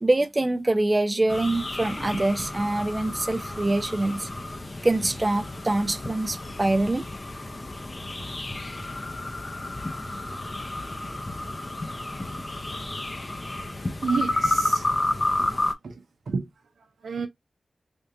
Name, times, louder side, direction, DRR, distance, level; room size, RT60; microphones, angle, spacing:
voice 1, 0.0-4.3 4.8-7.0, right 2 dB, 35° right, 0.4 m, -24 dB
sound 1, 1.3-15.7, left 2 dB, 40° left, 0.6 m, -31 dB
voice 2, 12.6-12.9 14.0-14.9 15.4-15.9 16.3-16.5 17.0-17.3, right 5 dB, 85° right, 0.6 m, -30 dB
3.4 x 2.5 x 2.6 m
cardioid pair, 45°, 0 cm